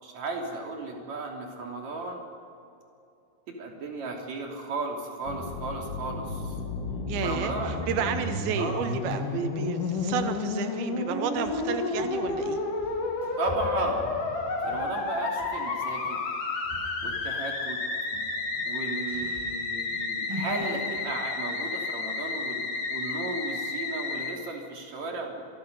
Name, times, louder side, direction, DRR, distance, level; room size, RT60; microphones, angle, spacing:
voice 1, 0.0-2.2 3.5-6.6 7.2-7.8 8.0-8.1 8.6-8.8 13.4-14.1 14.6-16.2 17.0-17.8 18.6-25.4, right 3 dB, 40° right, 0 dB, 3.8 m, -35 dB
Musical instrument, 5.2-24.3, left 3 dB, 50° left, 3.2 m, -31 dB
voice 2, 7.1-12.6, right 7 dB, 85° right, 7 dB, 2.1 m, -31 dB
sound 1, 8.6-10.3 11.3-15.5 16.0-16.3 16.6-17.3 17.6-17.7 18.1-21.0, equal, 5° right, 5.6 m, -43 dB
26.5 x 22.5 x 5.5 m, 2.7 s
omnidirectional pair, 5.9 m